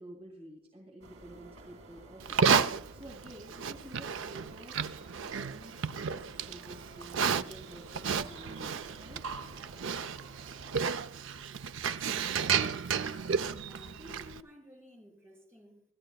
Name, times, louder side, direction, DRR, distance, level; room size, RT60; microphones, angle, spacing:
voice 1, 0.0-9.2, right 1 dB, 30° right, 2.4 m, -51 dB
sound 1, 1.0-10.9, right 2 dB, 80° right, 2.5 m, -53 dB
Livestock farm animals working animals, 2.2-14.4, right 6 dB, 65° right, 0.5 m, -32 dB
voice 2, 11.6-12.6 13.6-15.9, left 1 dB, 10° right, 3.7 m, -54 dB
25.5 x 13.0 x 2.3 m
head